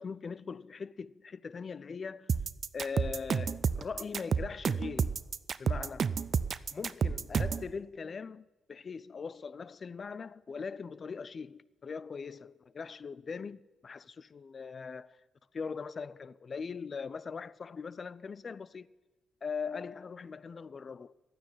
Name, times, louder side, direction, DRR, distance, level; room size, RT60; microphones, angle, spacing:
voice 1, 0.0-2.3 2.7-5.2 5.6-6.2 6.7-15.2 15.5-18.9 19.4-21.1, left 5 dB, 45° left, 0.5 m, -41 dB
sound 1, 2.3-7.7, right 6 dB, 55° right, 0.5 m, -30 dB
12.0 x 9.5 x 9.9 m
hypercardioid pair, 45°, 0 cm